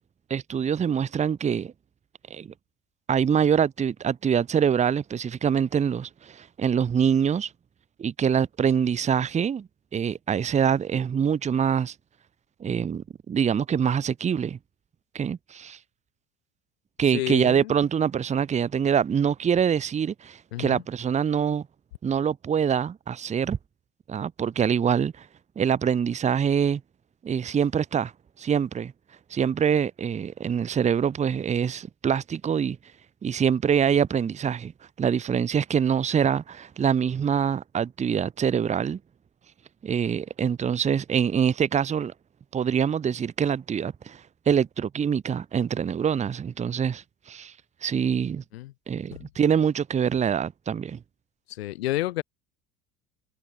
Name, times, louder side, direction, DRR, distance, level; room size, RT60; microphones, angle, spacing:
voice 1, 0.3-1.7 2.3-2.5 3.1-7.5 8.0-11.9 12.6-14.6 15.1-15.8 17.0-21.6 22.0-23.6 24.1-25.3 25.6-26.8 27.2-28.1 28.4-28.9 29.3-32.8 33.2-34.7 35.0-39.0 39.8-42.1 42.5-47.5 47.8-48.4 48.9-51.0, right 7 dB, 20° right, 0.9 m, -25 dB
voice 2, 17.1-17.7 20.5-20.8 48.5-48.7 49.1-49.3 51.5-52.2, left 16 dB, 65° left, 1.9 m, -30 dB
figure-of-eight pair, 65°, 33 cm